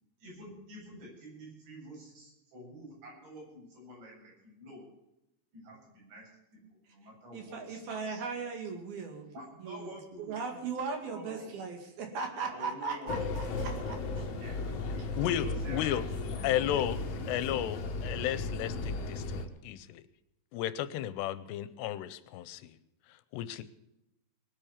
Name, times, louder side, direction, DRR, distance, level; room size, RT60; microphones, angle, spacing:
voice 1, 0.2-4.8 5.5-7.8 9.3-11.5 12.4-13.2 14.4-14.6 15.3-16.0 16.3-16.6, equal, 90° right, -3 dB, 10.0 m, -49 dB
voice 2, 7.3-9.3 9.6-9.9 10.2-14.0 16.7-17.0, right 4 dB, 60° right, 4 dB, 3.7 m, -38 dB
sound 1, 13.1-19.4, left 3 dB, 55° left, 1.9 m, -35 dB
voice 3, 15.2-16.0 16.4-17.0 17.3-20.0 20.5-22.8 23.3-23.6, left 12 dB, 80° left, 15 dB, 2.8 m, -33 dB
20.0 x 9.0 x 7.1 m, 0.85 s
omnidirectional pair, 5.0 m